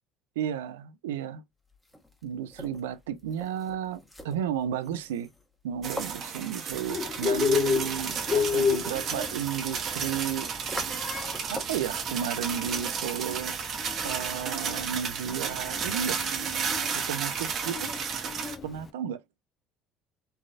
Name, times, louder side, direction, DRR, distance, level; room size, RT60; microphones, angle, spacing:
voice 1, 0.4-1.4 2.2-5.3 5.6-10.5 11.5-13.6 14.0-16.3 16.9-17.9 18.6-19.2, right 9 dB, 80° right, 0.3 m, -33 dB
sound 1, 1.7-11.9, equal, 5° left, 1.0 m, -46 dB
sound 2, 5.8-18.6, right 6 dB, 50° right, 0.7 m, -33 dB
Bird, 6.7-18.9, left 6 dB, 35° left, 0.4 m, -32 dB
3.2 x 2.3 x 2.4 m
hypercardioid pair, 65°, 0 cm